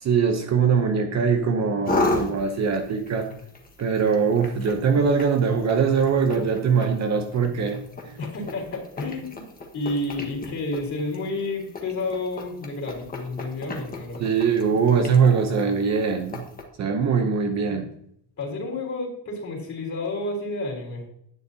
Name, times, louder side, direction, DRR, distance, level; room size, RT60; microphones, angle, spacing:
voice 1, 0.0-3.3 3.8-7.8 8.0-8.2 14.2-16.4 16.8-17.9, right 6 dB, 35° right, 4 dB, 0.8 m, -22 dB
sound 1, 1.9-16.6, left 2 dB, 20° left, 1.4 m, -35 dB
voice 2, 8.2-9.4 9.7-14.2 18.4-21.0, left 2 dB, 35° left, 0 dB, 3.7 m, -30 dB
10.5 x 9.2 x 2.8 m, 0.71 s
cardioid pair, 165°, 49 cm